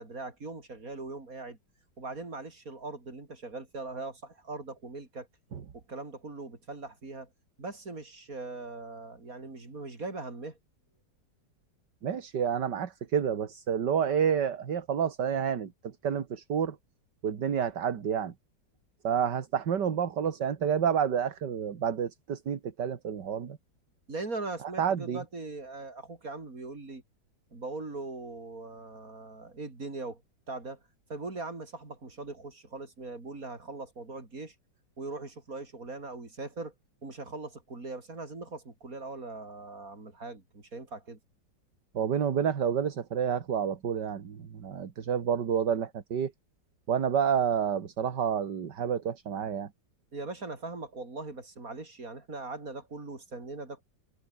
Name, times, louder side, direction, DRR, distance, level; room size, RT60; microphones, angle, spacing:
voice 1, 0.0-1.6 2.0-5.3 5.7-7.3 7.6-10.6 24.1-27.0 27.5-30.2 30.5-30.8 31.1-34.5 35.0-36.7 37.0-41.2 50.1-53.8, right 3 dB, 50° right, 4.9 m, -40 dB
voice 2, 12.0-16.8 17.2-18.3 19.0-23.6 24.8-25.2 41.9-46.3 46.9-49.7, right 8 dB, 70° right, 2.3 m, -29 dB
omnidirectional pair, 1.9 m